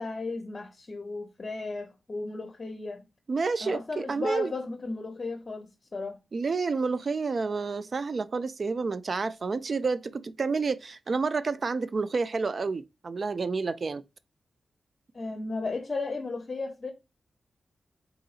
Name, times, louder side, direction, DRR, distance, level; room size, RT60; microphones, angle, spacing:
voice 1, 0.0-3.0 3.6-6.2 15.1-16.9, left 3 dB, 30° left, 0.7 m, -35 dB
voice 2, 3.3-4.5 6.3-14.0, right 4 dB, 40° right, 0.3 m, -29 dB
3.9 x 3.7 x 2.4 m
wide cardioid pair, 155°, 0 cm